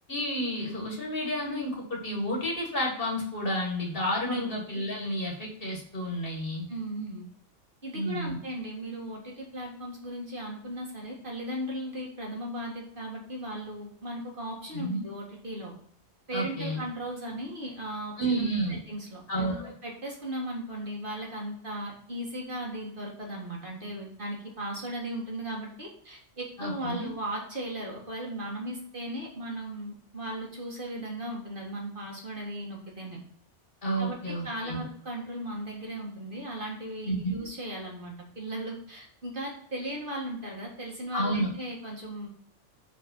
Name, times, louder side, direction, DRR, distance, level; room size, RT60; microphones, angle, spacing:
voice 1, 0.1-6.7 7.9-8.4 14.7-15.0 16.3-16.8 18.2-18.8 19.3-19.7 26.6-27.1 33.8-34.8 37.0-37.4 41.1-41.5, equal, 50° left, -1 dB, 1.9 m, -31 dB
voice 2, 6.7-7.3 7.8-15.7 16.3-33.2 34.0-42.3, right 1 dB, 45° right, -1 dB, 1.9 m, -37 dB
5.4 x 5.1 x 5.3 m, 0.63 s
omnidirectional pair, 1.3 m